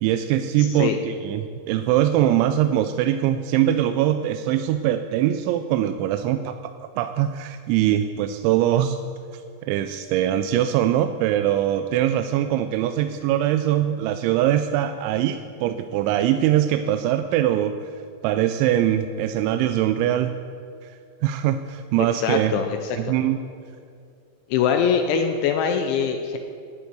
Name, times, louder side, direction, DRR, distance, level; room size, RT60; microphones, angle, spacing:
voice 1, 0.0-9.0 9.3-17.8 18.2-20.3 20.8-20.9 21.2-22.5 23.0-23.4, right 11 dB, 85° right, 9 dB, 2.8 m, -22 dB
voice 2, 0.6-1.0 22.1-23.0 24.5-26.4, left 7 dB, 80° left, 5 dB, 3.0 m, -23 dB
11.5 x 8.2 x 9.3 m, 2.4 s
omnidirectional pair, 5.6 m